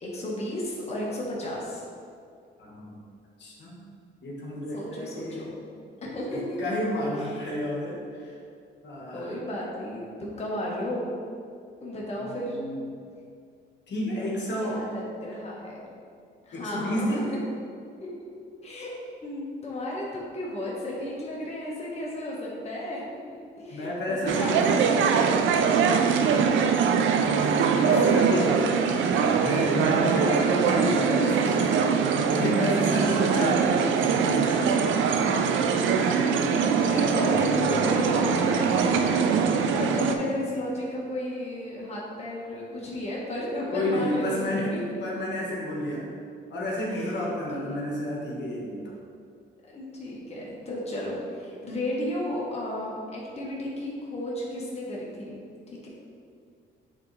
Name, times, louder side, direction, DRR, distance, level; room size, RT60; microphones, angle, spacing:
voice 1, 0.0-1.8 4.7-5.5 6.0-6.6 7.1-7.4 9.1-11.1 11.8-12.6 14.6-15.9 16.4-17.4 18.6-18.9 19.2-23.0 23.6-25.3 26.2-26.6 27.8-28.9 36.2-44.8 46.9-47.8 49.7-55.4 55.7-55.9, left 1 dB, 30° left, -5 dB, 1.4 m, -33 dB
voice 2, 2.6-3.0 3.4-3.8 4.2-5.5 6.3-8.3 8.8-9.4 12.2-12.9 13.9-14.8 16.5-17.3 23.7-24.7 27.4-28.5 28.8-34.8 43.7-46.1 46.5-49.0, left 1 dB, 60° left, -4 dB, 1.4 m, -31 dB
sound 1, 24.3-40.2, right 6 dB, 75° right, 0.5 m, -23 dB
sound 2, 37.3-40.9, left 1 dB, 5° left, 1.0 m, -42 dB
8.2 x 3.6 x 3.3 m, 2.3 s
cardioid pair, 90°, 20 cm